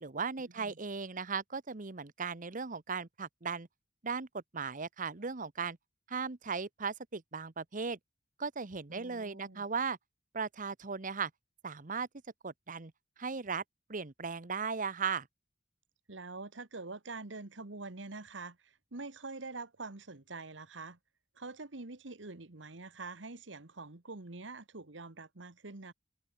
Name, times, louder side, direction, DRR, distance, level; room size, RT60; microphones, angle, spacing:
voice 1, 0.0-3.7 4.0-5.8 6.1-8.0 8.4-10.0 10.3-11.3 11.6-12.1 12.4-12.9 13.2-13.6 13.9-15.3, right 5 dB, 45° right, 1.0 m, -37 dB
voice 2, 8.9-9.6 16.1-21.0 21.3-25.9, right 3 dB, 75° right, 1.6 m, -45 dB
open air
head